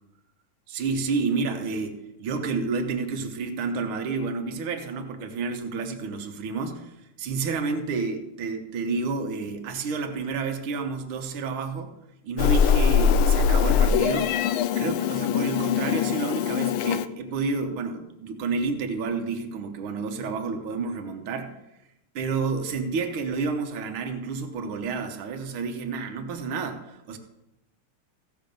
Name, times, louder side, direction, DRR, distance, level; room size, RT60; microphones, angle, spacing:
voice 1, 0.7-11.9 12.2-14.4 14.8-21.6 22.2-27.2, right 4 dB, 80° right, 5 dB, 1.9 m, -30 dB
Meow, 12.4-17.1, left 7 dB, 85° left, 1.4 m, -22 dB
15.5 x 6.4 x 5.2 m, 0.91 s
omnidirectional pair, 2.3 m